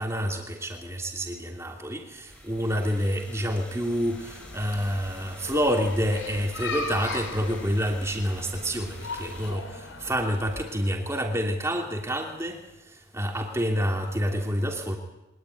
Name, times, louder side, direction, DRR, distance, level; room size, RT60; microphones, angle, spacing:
voice 1, 0.0-12.6 13.1-15.0, equal, 15° right, 3 dB, 3.0 m, -28 dB
sound 1, 2.3-9.5, left 1 dB, 5° left, 5.6 m, -48 dB
sound 2, 4.1-10.9, left 3 dB, 70° left, 4.3 m, -38 dB
23.5 x 19.0 x 9.5 m, 0.96 s
head